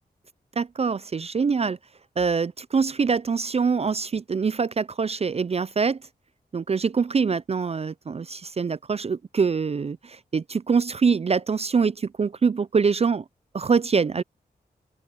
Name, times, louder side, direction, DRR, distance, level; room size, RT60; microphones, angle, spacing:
voice 1, 0.6-1.8 2.2-6.0 6.5-13.2 13.5-14.2, right 5 dB, 35° right, 0.4 m, -24 dB
open air
cardioid pair, 45°, 18 cm